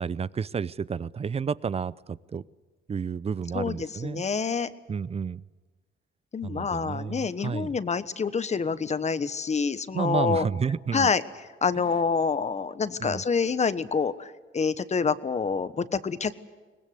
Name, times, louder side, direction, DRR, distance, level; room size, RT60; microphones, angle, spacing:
voice 1, 0.0-2.4 2.9-4.2 4.9-5.4 6.4-7.7 9.9-11.1 13.0-13.2, right 6 dB, 30° right, 20 dB, 0.6 m, -31 dB
voice 2, 3.5-4.7 6.3-10.4 10.9-11.2 11.6-16.3, left 5 dB, 35° left, 13 dB, 1.2 m, -27 dB
22.5 x 20.0 x 8.1 m, 1.4 s
cardioid pair, 90°, 20 cm